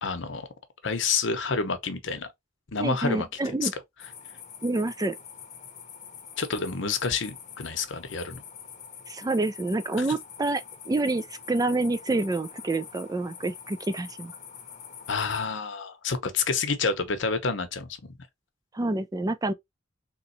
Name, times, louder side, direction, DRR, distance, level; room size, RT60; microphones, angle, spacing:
voice 1, 0.0-0.5 0.8-2.3 2.7-3.3 3.6-3.7 6.4-8.4 15.1-18.0, left 5 dB, 70° left, 0.8 m, -28 dB
voice 2, 2.8-3.7 4.6-5.2 9.1-14.3 18.7-19.5, right 2 dB, 20° right, 0.4 m, -28 dB
sound 1, 4.0-15.5, left 7 dB, 40° left, 0.8 m, -45 dB
3.7 x 3.0 x 2.6 m
head